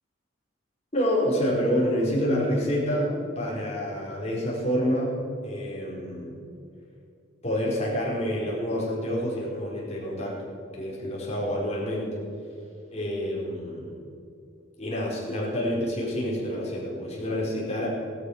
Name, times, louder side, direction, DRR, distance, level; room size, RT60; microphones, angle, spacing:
voice 1, 0.9-5.2 5.4-6.4 7.4-10.3 10.7-12.2 12.9-13.9 14.8-17.9, equal, 35° left, -5 dB, 4.7 m, -28 dB
17.0 x 12.5 x 6.5 m, 2.5 s
head